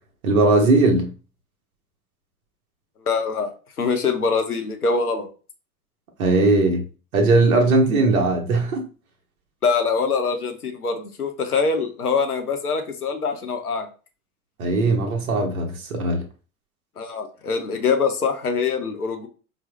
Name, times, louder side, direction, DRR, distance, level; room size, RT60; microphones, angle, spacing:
voice 1, 0.2-1.1 6.2-6.8 7.1-8.8 14.6-16.2, right 2 dB, 70° right, 0.8 m, -19 dB
voice 2, 3.1-3.5 3.8-5.3 9.6-13.9 17.0-19.3, left 5 dB, 85° left, 0.6 m, -24 dB
4.0 x 2.0 x 2.9 m
figure-of-eight pair, 75°, 44 cm